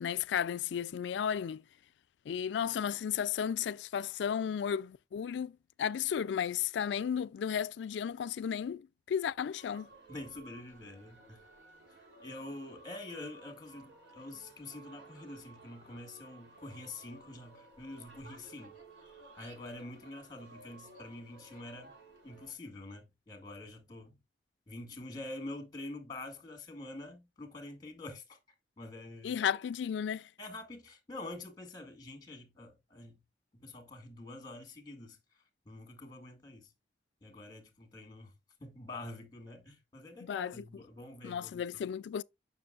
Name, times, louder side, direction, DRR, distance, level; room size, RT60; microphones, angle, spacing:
voice 1, 0.0-1.6 2.3-9.9 29.2-30.3 40.3-40.5 41.2-42.2, left 8 dB, 80° left, 0.3 m, -34 dB
sound 1, 9.5-22.5, right 3 dB, 85° right, 3.0 m, -56 dB
voice 2, 10.1-11.5 11.9-18.8 19.4-21.9 22.2-24.1 24.7-28.4 28.8-29.5 30.4-33.2 33.5-36.7 37.2-38.3 38.6-41.7, left 2 dB, 20° left, 2.0 m, -46 dB
9.4 x 6.0 x 2.4 m
head